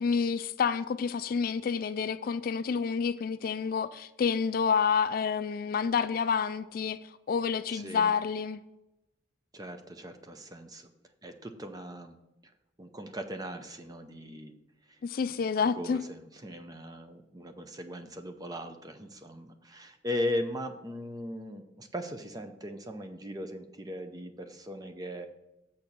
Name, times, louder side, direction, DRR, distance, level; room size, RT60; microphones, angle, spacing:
voice 1, 0.0-7.0 7.3-8.6 15.0-16.0, left 6 dB, 55° left, 0.3 m, -29 dB
voice 2, 7.7-8.1 9.5-10.9 11.2-12.2 12.4-12.5 12.8-14.5 14.9-15.0 15.6-25.3, left 1 dB, 20° right, 0.6 m, -38 dB
7.2 x 4.4 x 6.6 m
head